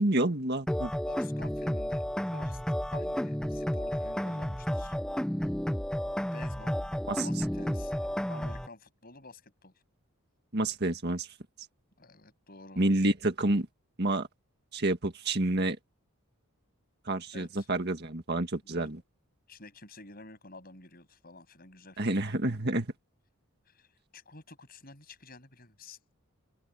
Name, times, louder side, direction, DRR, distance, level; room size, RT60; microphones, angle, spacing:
voice 1, 0.0-0.9 7.1-7.3 10.5-11.3 12.8-13.7 14.0-14.3 14.7-15.8 17.1-19.0 22.0-22.9, right 2 dB, 45° right, 1.8 m, -28 dB
sound 1, 0.7-8.7, equal, 5° left, 0.4 m, -32 dB
voice 2, 1.1-2.1 2.3-2.6 2.9-4.9 6.3-6.8 7.2-9.7 12.0-12.8 17.3-17.7 18.6-18.9 19.5-22.2 23.8-23.9 24.1-26.0, left 3 dB, 40° left, 7.9 m, -50 dB
open air
head